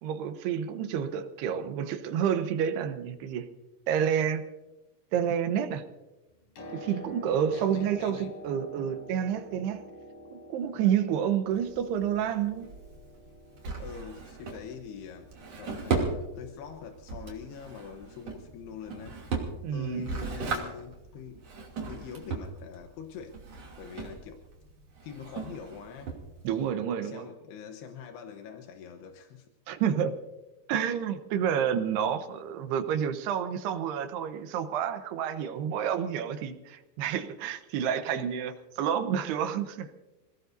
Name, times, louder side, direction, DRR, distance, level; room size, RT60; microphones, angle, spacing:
voice 1, 0.0-3.5 3.9-4.4 5.1-5.8 6.7-9.8 10.3-12.7 19.6-20.1 26.4-27.3 29.7-30.1 30.7-39.9, right 8 dB, 85° right, 3.1 m, -29 dB
Piano, 6.3-20.0 21.1-21.2, equal, 60° left, 5.2 m, -49 dB
voice 2, 7.5-8.3 13.7-15.3 15.6-19.2 19.7-21.4 21.9-23.4 23.8-24.4 25.0-26.2 27.0-29.5, left 7 dB, 85° left, 3.1 m, -44 dB
Drawer open or close, 11.5-26.7, right 4 dB, 45° right, 3.5 m, -37 dB
27.5 x 18.0 x 2.7 m
omnidirectional pair, 4.6 m